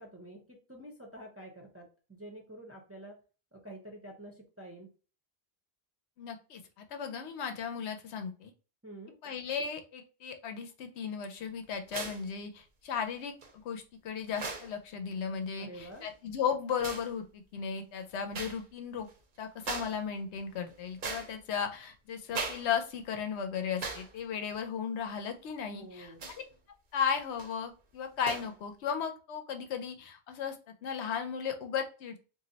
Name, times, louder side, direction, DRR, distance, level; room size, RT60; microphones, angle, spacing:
voice 1, 0.0-3.2 3.5-4.9 8.8-9.2 15.5-16.1 25.7-26.2, right 1 dB, 20° right, -1 dB, 0.5 m, -48 dB
voice 2, 6.2-8.5 9.2-13.4 13.6-19.1 19.4-26.1 26.9-30.6 30.8-32.2, left 7 dB, 85° left, 6 dB, 0.9 m, -35 dB
sound 1, 11.9-12.3 13.4-13.5 14.3-14.7 15.8-16.1 16.8-17.1 18.3-18.6 19.0-19.1 19.6-20.0 20.4-21.6 22.3-22.7 23.0-23.1 23.8-24.1 24.5-24.6 26.1-26.5 27.2-27.5 28.2-28.5, right 4 dB, 55° right, 0.7 m, -39 dB
2.6 x 2.0 x 3.8 m, 0.35 s
omnidirectional pair, 1.1 m